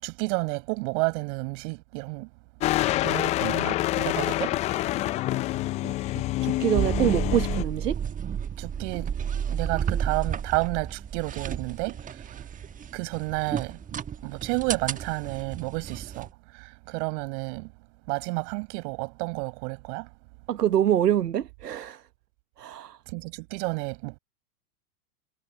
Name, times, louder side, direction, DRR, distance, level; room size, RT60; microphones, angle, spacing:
voice 1, 0.0-2.3 3.0-4.5 8.6-9.1 9.5-12.0 12.9-13.8 14.2-16.3 16.6-17.7 18.1-20.1 23.1-24.2, right 33 dB, 50° right, 6.7 m, -31 dB
sound 1, 2.6-7.6, left 16 dB, 15° left, 0.4 m, -27 dB
voice 2, 5.8-8.0 20.5-22.0 22.6-23.0, right 11 dB, 80° right, 1.1 m, -26 dB
sound 2, 6.7-16.3, right 8 dB, 15° right, 1.3 m, -32 dB
hypercardioid pair, 110°, 46 cm